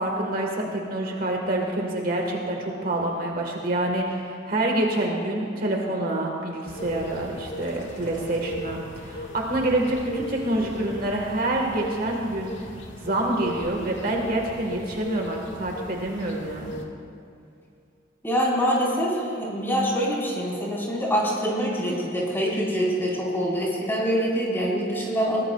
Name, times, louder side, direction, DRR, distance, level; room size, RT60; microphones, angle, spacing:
voice 1, 0.0-12.7 13.0-16.8, right 1 dB, 50° right, 0 dB, 1.6 m, -27 dB
sound 1, 6.7-16.8, equal, 75° left, 1.7 m, -37 dB
voice 2, 18.2-25.4, equal, 15° left, -6 dB, 4.3 m, -25 dB
22.0 x 18.5 x 2.4 m, 2.4 s
head